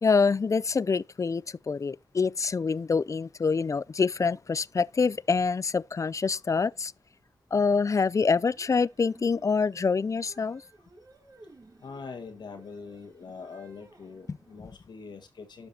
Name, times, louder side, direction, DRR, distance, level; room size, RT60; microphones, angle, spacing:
voice 1, 0.0-6.9 7.5-10.6, left 5 dB, 45° left, 0.4 m, -26 dB
sound 1, 7.9-14.7, right 2 dB, 55° right, 2.0 m, -56 dB
voice 2, 11.8-15.7, left 5 dB, 90° left, 1.5 m, -43 dB
12.0 x 5.3 x 2.8 m
cardioid pair, 45°, 7 cm